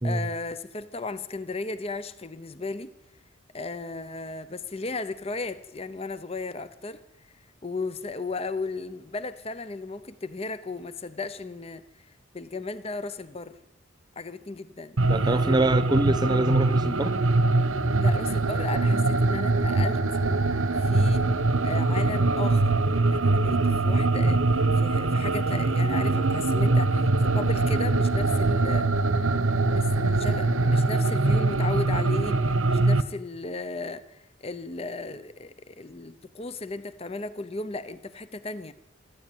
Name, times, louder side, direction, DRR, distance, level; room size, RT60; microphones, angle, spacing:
voice 1, 0.0-2.9 3.5-7.3 7.6-13.6 14.2-15.0 18.0-20.0 20.7-21.3 21.6-22.7 23.1-28.9 29.6-38.7, left 3 dB, 30° left, 0.7 m, -35 dB
sound 1, 15.0-33.0, right 2 dB, 80° right, 1.0 m, -23 dB
voice 2, 15.1-17.1, right 2 dB, 20° right, 0.9 m, -24 dB
25.0 x 13.0 x 9.2 m
head